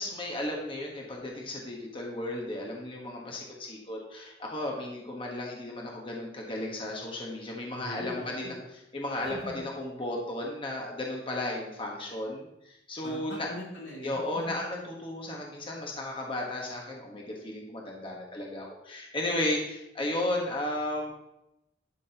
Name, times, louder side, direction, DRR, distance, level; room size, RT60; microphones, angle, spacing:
voice 1, 0.0-8.5 8.9-13.5 14.0-21.1, left 1 dB, 30° left, -1 dB, 1.2 m, -34 dB
voice 2, 7.7-8.6 9.2-9.6 13.0-14.2 14.5-14.6, equal, 90° left, -4 dB, 2.8 m, -41 dB
11.5 x 6.2 x 2.9 m, 0.88 s
head